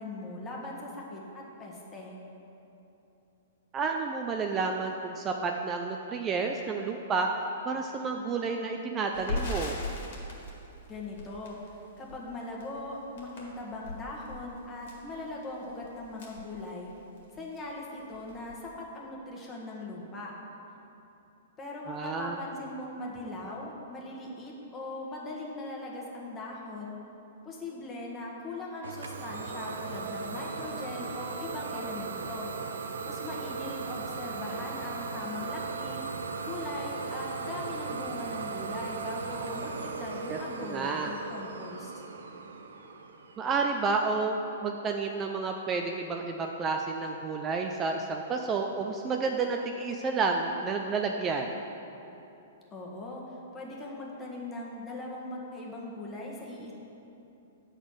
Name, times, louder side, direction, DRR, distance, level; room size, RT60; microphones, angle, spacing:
voice 1, 0.0-2.2 10.9-16.9 17.3-20.3 21.6-27.0 27.4-36.0 36.4-42.0 52.7-53.2 53.5-56.7, left 2 dB, 20° left, -3 dB, 1.4 m, -40 dB
voice 2, 3.7-7.3 7.6-9.8 21.9-22.4 40.3-41.1 43.4-44.4 44.6-51.5, right 4 dB, 25° right, 3 dB, 0.4 m, -30 dB
Crackle, 9.1-17.2 17.5-17.7 18.0-18.7, left 2 dB, 65° left, 1.8 m, -39 dB
Idling / Domestic sounds home sounds, 28.8-44.4, right 4 dB, 85° right, 0.5 m, -37 dB
7.8 x 4.1 x 6.2 m, 2.9 s
hypercardioid pair, 130°, 0 cm